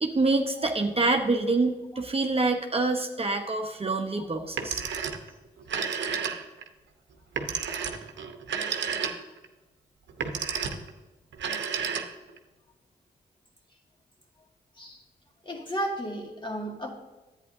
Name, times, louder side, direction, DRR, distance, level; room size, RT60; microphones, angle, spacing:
voice 1, 0.0-4.8, right 3 dB, 30° right, 3 dB, 0.9 m, -26 dB
Telephone, 4.4-5.3 5.6-6.7 7.3-9.4 10.1-10.9 11.3-12.4, right 6 dB, 80° right, 0.8 m, -31 dB
voice 2, 15.4-16.9, right 1 dB, 25° left, 1 dB, 2.2 m, -34 dB
10.5 x 8.9 x 2.7 m, 1.2 s
supercardioid pair, 45°, 18 cm